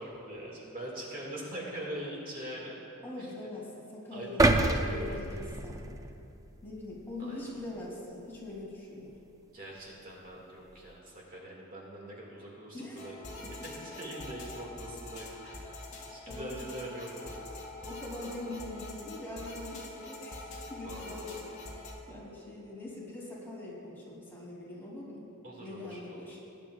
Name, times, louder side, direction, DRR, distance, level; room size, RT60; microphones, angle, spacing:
voice 1, 0.0-2.8 3.2-3.3 4.1-5.2 7.2-7.5 9.5-15.7 16.0-17.5 20.8-21.3 25.4-26.3, right 1 dB, 40° right, -3 dB, 1.9 m, -43 dB
voice 2, 3.0-6.0 6.6-9.2 12.7-13.1 13.4-13.5 16.3-16.7 17.9-20.4 20.7-21.3 21.6-21.8 22.1-25.3 25.6-26.4, left 2 dB, 10° left, -7 dB, 2.8 m, -43 dB
sound 1, 4.4-6.6 7.0-7.2, right 2 dB, 15° right, 0.5 m, -27 dB
sound 2, 13.0-21.9, left 2 dB, 35° left, 1.8 m, -44 dB
20.5 x 10.0 x 2.4 m, 2.7 s
head